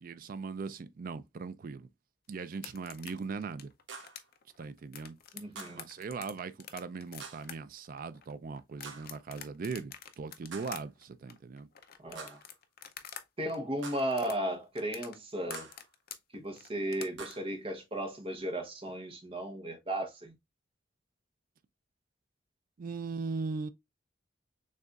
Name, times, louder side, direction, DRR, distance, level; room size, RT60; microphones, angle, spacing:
voice 1, 0.0-1.9 2.3-3.7 4.6-5.2 5.7-11.7 22.8-23.7, right 4 dB, 45° right, 0.4 m, -39 dB
sound 1, 2.5-13.2 13.5-17.3, left 9 dB, 50° left, 0.5 m, -47 dB
sound 2, 3.9-4.3 5.6-5.9 7.2-7.5 8.8-9.2 10.5-10.8 12.2-12.6 13.8-14.2 15.5-15.9 17.2-17.4, right 5 dB, 70° right, 0.8 m, -46 dB
voice 2, 5.3-5.9 12.0-12.4 13.4-15.7 16.3-20.3, right 1 dB, 30° right, 0.8 m, -35 dB
6.5 x 2.4 x 2.4 m
head